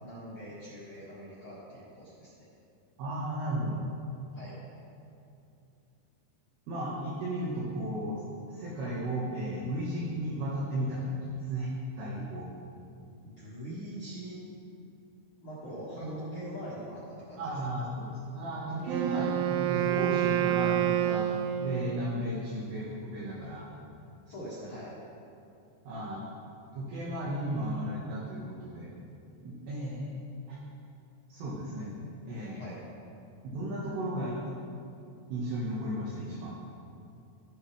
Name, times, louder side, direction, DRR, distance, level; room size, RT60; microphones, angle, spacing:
voice 1, 0.0-2.4 4.3-4.6 13.2-14.4 15.4-17.5 19.1-19.2 24.3-24.9 32.6-32.8, equal, 50° left, -10 dB, 1.7 m, -43 dB
voice 2, 3.0-3.8 6.7-11.7 12.0-12.5 16.0-16.2 17.4-21.3 21.6-23.6 25.8-26.3 26.7-28.9 29.4-30.1 30.5-30.6 31.3-31.9 32.3-32.7 33.4-34.5 35.3-36.6, right 1 dB, 70° right, -5 dB, 2.9 m, -34 dB
Wind instrument woodwind instrument, 18.8-22.1, right 11 dB, 85° right, 2.3 m, -28 dB
16.0 x 6.4 x 3.2 m, 2.6 s
omnidirectional pair, 5.2 m